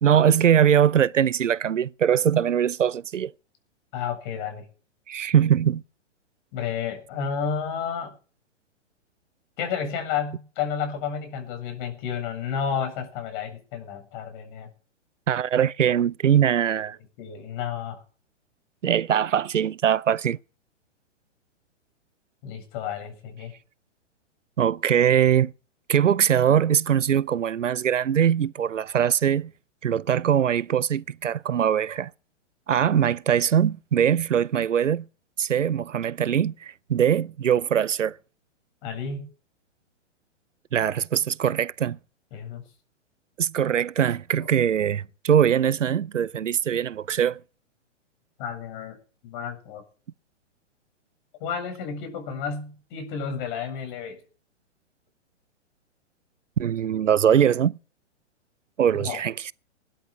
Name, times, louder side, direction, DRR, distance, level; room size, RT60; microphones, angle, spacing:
voice 1, 0.0-3.3 5.1-5.8 15.3-17.0 18.8-20.4 24.6-25.5 25.9-29.5 29.8-32.1 32.7-35.1 35.4-38.2 40.7-42.0 43.4-47.4 56.6-57.8 58.8-59.5, right 9 dB, 85° right, 0.7 m, -22 dB
voice 2, 3.9-4.7 6.5-8.1 9.6-14.7 16.8-16.9 17.2-18.0 22.4-23.5 38.8-39.3 42.3-42.6 48.4-49.0 49.2-49.8 51.4-54.2 59.0-59.2, left 7 dB, 40° left, 7.7 m, -31 dB
19.5 x 13.0 x 5.0 m
hypercardioid pair, 120°, 36 cm